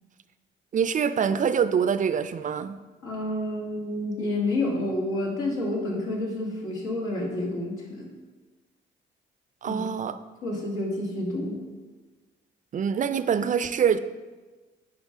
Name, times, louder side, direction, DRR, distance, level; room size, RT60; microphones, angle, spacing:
voice 1, 0.7-2.8 9.6-10.2 12.7-14.0, right 7 dB, 40° right, 13 dB, 0.4 m, -25 dB
voice 2, 3.0-8.1 9.7-9.9 10.4-11.6, left 1 dB, 80° left, -2 dB, 2.2 m, -29 dB
9.5 x 5.4 x 3.6 m, 1.3 s
cardioid pair, 90°, 20 cm